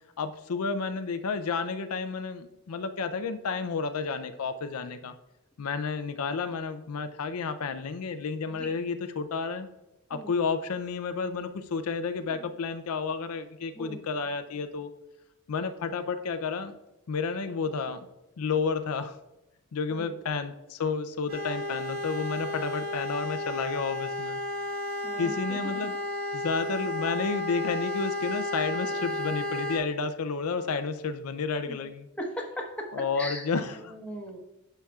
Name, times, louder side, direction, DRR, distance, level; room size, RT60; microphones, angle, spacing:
voice 1, 0.2-5.1 5.6-9.7 10.1-14.9 15.5-16.7 17.1-18.1 18.4-19.1 19.7-24.4 25.2-26.0 26.3-32.1 32.9-33.9, left 5 dB, 80° left, 9 dB, 0.5 m, -31 dB
sound 1, 21.3-29.8, left 1 dB, 75° right, 2.2 m, -33 dB
voice 2, 25.0-26.0 31.7-31.8 32.2-32.9 33.2-34.4, equal, 5° left, 0 dB, 1.1 m, -39 dB
11.5 x 5.8 x 2.3 m, 0.97 s
head